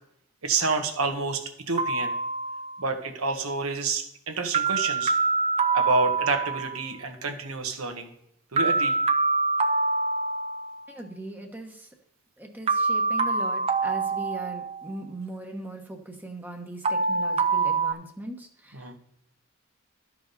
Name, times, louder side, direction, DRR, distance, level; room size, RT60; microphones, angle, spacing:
voice 1, 0.4-2.1 2.8-5.1 5.7-8.1 8.5-9.0 18.7-19.0, right 3 dB, 85° right, 5 dB, 1.3 m, -28 dB
sound 1, 1.8-2.9 4.5-6.9 8.6-10.9 12.7-15.0 16.8-17.9, right 4 dB, 30° right, 0.4 m, -25 dB
voice 2, 10.9-11.9 12.4-19.0, right 1 dB, 10° right, 2 dB, 1.0 m, -39 dB
12.5 x 4.9 x 5.3 m, 0.76 s
head